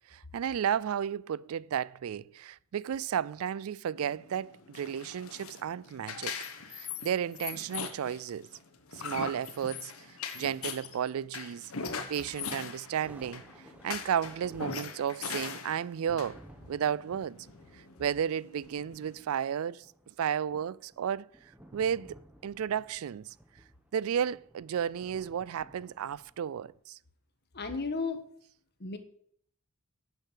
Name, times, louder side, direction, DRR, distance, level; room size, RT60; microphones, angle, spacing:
voice 1, 0.1-6.3 6.7-8.5 8.9-9.9 10.3-11.7 12.1-13.4 13.8-16.4 16.7-17.4 18.0-19.9 20.2-21.3 21.7-23.3 23.9-27.0, right 8 dB, 75° right, 0.3 m, -33 dB
sound 1, 4.0-19.2, left 5 dB, 75° left, 1.4 m, -41 dB
sound 2, 12.5-26.8, right 1 dB, 5° right, 1.2 m, -57 dB
voice 2, 27.5-28.2 28.8-29.0, left 4 dB, 50° left, 1.4 m, -33 dB
11.0 x 7.1 x 7.4 m
head